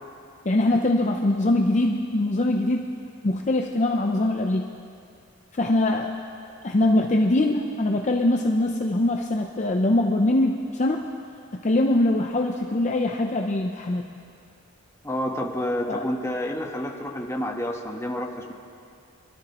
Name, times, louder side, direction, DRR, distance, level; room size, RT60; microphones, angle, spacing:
voice 1, 0.4-2.9 3.2-4.7 5.6-6.1 6.6-11.1 11.6-14.1 15.9-16.1, left 1 dB, 35° left, 2 dB, 0.6 m, -22 dB
voice 2, 15.0-18.5, left 1 dB, 15° left, 1 dB, 1.2 m, -29 dB
25.5 x 13.0 x 3.0 m, 2.4 s
head